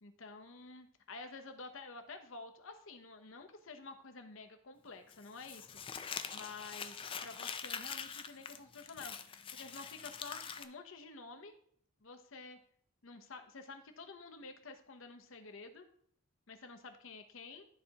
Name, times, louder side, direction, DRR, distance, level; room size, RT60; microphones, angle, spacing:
voice 1, 0.0-11.5 12.0-12.6 13.0-15.8 16.5-17.7, left 3 dB, 65° left, 6 dB, 0.9 m, -50 dB
Crumpling crinkling, 5.1-10.6, left 6 dB, 25° left, 0.4 m, -44 dB
12.5 x 4.2 x 2.9 m, 0.64 s
head